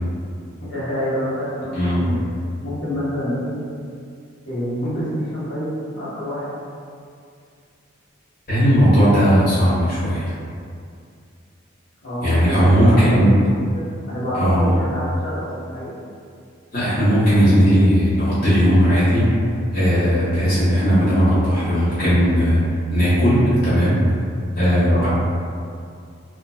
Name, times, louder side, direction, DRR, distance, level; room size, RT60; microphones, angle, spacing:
voice 1, 0.6-2.2 2.6-3.6 4.4-6.5 12.0-13.2 13.7-16.0 24.9-25.1, equal, 75° left, -13 dB, 0.9 m, -27 dB
voice 2, 1.7-2.1 8.5-10.3 12.2-13.3 14.3-14.7 16.7-19.3 19.7-24.0 24.5-25.1, equal, 45° left, -13 dB, 1.4 m, -17 dB
2.8 x 2.2 x 2.8 m, 2.3 s
head